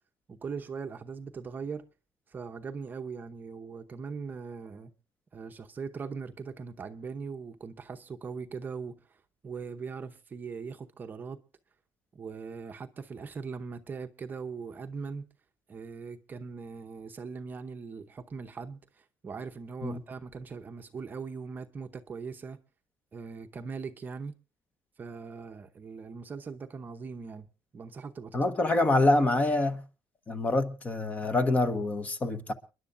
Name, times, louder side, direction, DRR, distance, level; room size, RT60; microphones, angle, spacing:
voice 1, 0.3-1.9 2.3-4.9 5.3-9.0 9.4-11.4 12.1-15.3 15.7-22.6 23.1-24.3 25.0-27.5 27.7-28.4, right 5 dB, 25° right, 0.8 m, -40 dB
voice 2, 28.3-29.8 30.3-32.5, left 2 dB, 20° left, 1.1 m, -26 dB
30.0 x 11.0 x 2.6 m
cardioid pair, 160°, 7 cm